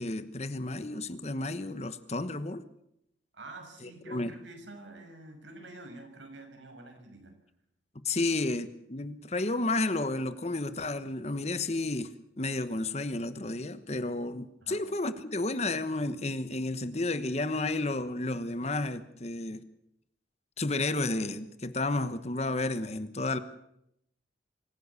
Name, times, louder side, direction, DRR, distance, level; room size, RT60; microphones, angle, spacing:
voice 1, 0.0-2.6 3.8-4.3 8.0-19.6 20.6-23.4, left 2 dB, 35° left, 1.1 m, -32 dB
voice 2, 3.3-7.3 14.6-14.8, right 2 dB, 80° right, 6.3 m, -47 dB
25.5 x 16.0 x 8.3 m
head